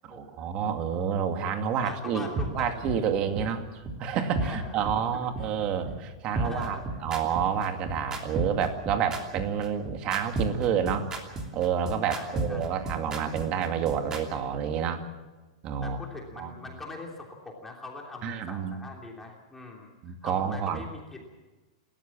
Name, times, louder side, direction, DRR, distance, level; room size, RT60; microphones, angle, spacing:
voice 1, 0.0-3.6 4.0-11.1 11.5-15.1 15.6-16.0 16.4-16.5 18.2-18.8 20.0-20.9, right 7 dB, 35° right, 6 dB, 2.3 m, -29 dB
voice 2, 1.8-2.9 4.4-4.8 5.1-5.3 5.6-5.7 6.3-7.0 12.1-12.7 15.8-19.9 20.2-21.2, left 2 dB, 10° left, -1 dB, 3.1 m, -42 dB
sound 1, 2.4-2.5 2.8-3.0 3.3-3.4 3.9-4.0 4.3-4.5 4.8-5.0 5.3-5.4 5.9-6.0 6.3-14.2, right 2 dB, 20° right, 2.9 m, -31 dB
29.5 x 13.5 x 7.4 m, 1.2 s
supercardioid pair, 155°, 3 cm